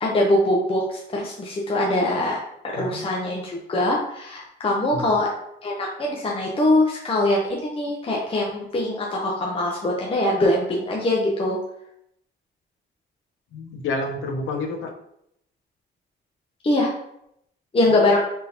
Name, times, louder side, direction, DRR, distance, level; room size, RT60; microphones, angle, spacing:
voice 1, 0.0-2.4 2.6-5.3 5.6-11.6 16.6-16.9 17.7-18.2, left 1 dB, 30° left, -2 dB, 0.8 m, -22 dB
voice 2, 2.8-3.1 4.9-5.1 13.5-14.9 17.9-18.2, left 2 dB, 85° left, 3 dB, 0.8 m, -30 dB
4.0 x 3.7 x 2.9 m, 0.75 s
cardioid pair, 90°, 20 cm